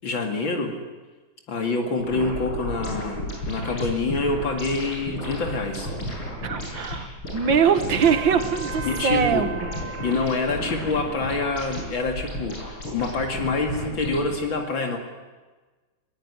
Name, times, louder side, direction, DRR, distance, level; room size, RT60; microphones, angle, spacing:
voice 1, 0.0-0.8 1.5-5.9 8.8-9.5 10.0-15.0, left 3 dB, 65° left, 4 dB, 3.0 m, -26 dB
sound 1, 2.0-14.4, left 1 dB, 85° left, 8.6 m, -33 dB
voice 2, 6.4-9.7, right 7 dB, 65° right, 10 dB, 2.2 m, -22 dB
Trumpet, 8.0-10.3, right 6 dB, 45° right, 0.7 m, -37 dB
21.5 x 20.0 x 9.7 m, 1.3 s
omnidirectional pair, 2.3 m